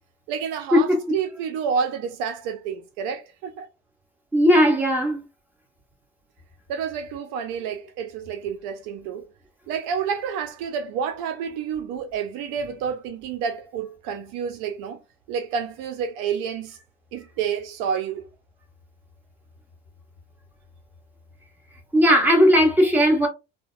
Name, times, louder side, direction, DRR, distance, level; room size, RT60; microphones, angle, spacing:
voice 1, 0.3-3.7 6.7-9.3 9.7-15.0 15.3-16.8 17.1-18.2, right 7 dB, 65° right, 0.5 m, -29 dB
voice 2, 4.3-5.2 21.9-23.3, equal, 5° right, 1.1 m, -17 dB
2.8 x 2.1 x 2.4 m
supercardioid pair, 100°, 37 cm